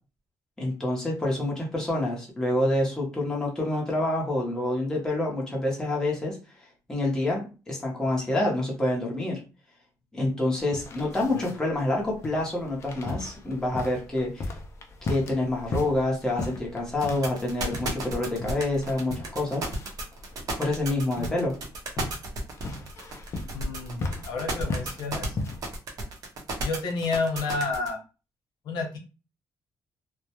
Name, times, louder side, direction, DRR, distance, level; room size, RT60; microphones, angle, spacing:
voice 1, 0.6-6.4 6.9-9.4 10.1-14.5 15.0-19.6 20.6-21.5, left 1 dB, 10° left, -3 dB, 0.7 m, -27 dB
sound 1, 10.6-25.8, left 2 dB, 40° left, 0.4 m, -37 dB
sound 2, 17.0-27.9, right 2 dB, 55° right, 0.7 m, -32 dB
voice 2, 23.5-25.4 26.6-28.0 28.6-29.0, left 3 dB, 90° left, 1 dB, 0.8 m, -30 dB
2.2 x 2.0 x 2.8 m, 0.32 s
cardioid pair, 170°, 7 cm